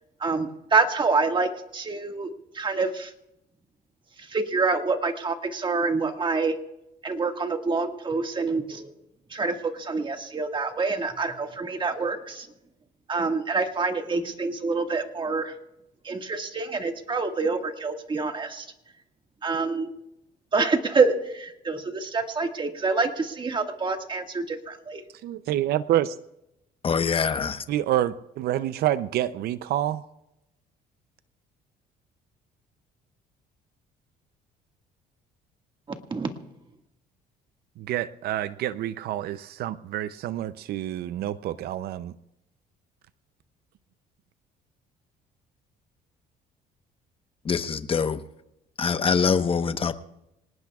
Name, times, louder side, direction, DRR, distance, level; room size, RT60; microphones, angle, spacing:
voice 1, 0.2-3.1 4.2-6.6 7.0-8.9 9.3-12.5 13.1-15.6 16.0-18.7 19.4-19.9 20.5-25.0 36.1-36.3, right 4 dB, 30° right, 5 dB, 1.9 m, -26 dB
voice 2, 25.2-26.2 27.7-30.0 37.8-42.1, right 12 dB, 70° right, 14 dB, 0.6 m, -27 dB
voice 3, 26.8-27.6 47.4-48.2 48.8-49.9, left 6 dB, 35° left, 10 dB, 1.1 m, -24 dB
26.5 x 18.5 x 2.4 m, 0.87 s
cardioid pair, 110°, 17 cm